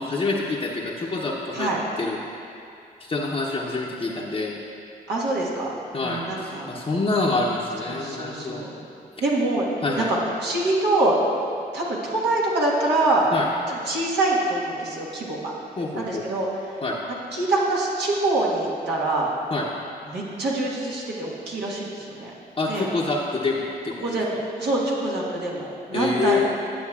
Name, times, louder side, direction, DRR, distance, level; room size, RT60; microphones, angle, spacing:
voice 1, 0.0-1.7 2.0-2.2 3.0-4.6 5.9-8.6 9.8-10.1 13.3-13.5 15.8-16.2 16.8-17.0 19.5-19.7 22.6-24.2 25.9-26.4, left 3 dB, 35° left, -4 dB, 0.8 m, -26 dB
voice 2, 5.1-5.7 6.0-6.7 7.9-8.8 9.2-9.7 10.0-11.2 11.7-13.3 13.7-15.4 15.9-16.5 17.3-19.3 20.1-22.3 22.7-22.9 24.0-24.3 24.6-26.4, right 2 dB, 75° right, -4 dB, 1.4 m, -25 dB
10.0 x 7.6 x 2.4 m, 2.5 s
cardioid pair, 60°, 18 cm